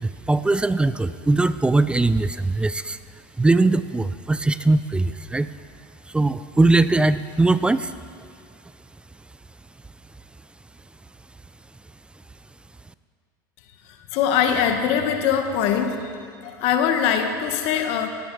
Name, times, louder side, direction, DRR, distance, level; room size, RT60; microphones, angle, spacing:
voice 1, 0.0-3.0 3.4-5.5 6.1-7.9, right 2 dB, 10° right, 14 dB, 0.4 m, -20 dB
voice 2, 14.1-18.1, left 8 dB, 60° left, 5 dB, 1.5 m, -22 dB
18.0 x 9.4 x 4.7 m, 2.2 s
supercardioid pair, 105°, 11 cm